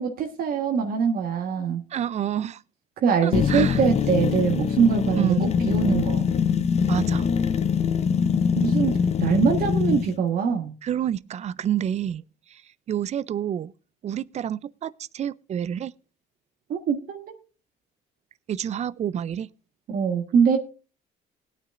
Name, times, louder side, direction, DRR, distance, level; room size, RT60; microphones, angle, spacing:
voice 1, 0.0-1.8 3.0-6.3 8.5-10.7 16.7-17.3 19.9-20.6, right 6 dB, 60° right, 1.4 m, -23 dB
voice 2, 1.9-2.6 3.2-3.8 5.2-5.5 6.9-7.3 10.8-12.2 12.5-12.6 12.9-13.7 14.0-15.9 18.5-19.5, right 9 dB, 40° right, 0.5 m, -28 dB
sound 1, 3.3-10.1, left 6 dB, 40° left, 0.7 m, -23 dB
20.0 x 9.1 x 2.5 m
cardioid pair, 110°, 17 cm